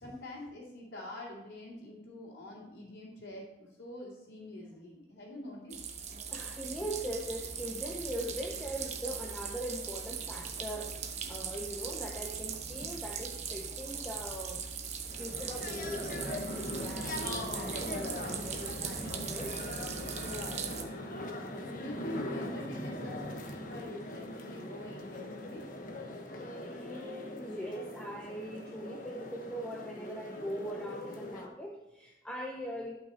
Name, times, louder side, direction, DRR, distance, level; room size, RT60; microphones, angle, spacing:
voice 1, 0.0-3.4 3.8-5.8 20.1-21.0 21.5-23.2 23.5-25.6, left 1 dB, 85° left, -8 dB, 2.6 m, -45 dB
sound 1, 5.7-20.8, right 6 dB, 40° right, 0.9 m, -40 dB
voice 2, 6.3-14.7 15.2-19.6 23.4-23.5 26.4-33.0, right 1 dB, 5° left, -1 dB, 0.7 m, -41 dB
sound 2, 15.0-31.5, left 1 dB, 50° left, 1.1 m, -40 dB
11.5 x 5.7 x 4.3 m, 0.97 s
head